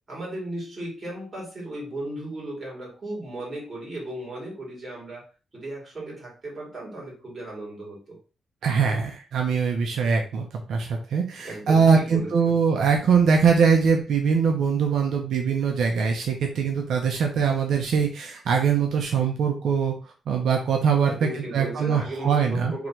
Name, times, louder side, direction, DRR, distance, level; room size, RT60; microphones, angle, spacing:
voice 1, 0.1-5.2 5.5-8.2 11.4-12.6 21.0-22.9, right 1 dB, 25° right, -5 dB, 2.6 m, -35 dB
voice 2, 8.6-22.7, right 6 dB, 75° right, 2 dB, 0.7 m, -22 dB
3.9 x 3.0 x 4.5 m, 0.36 s
wide cardioid pair, 165°, 0 cm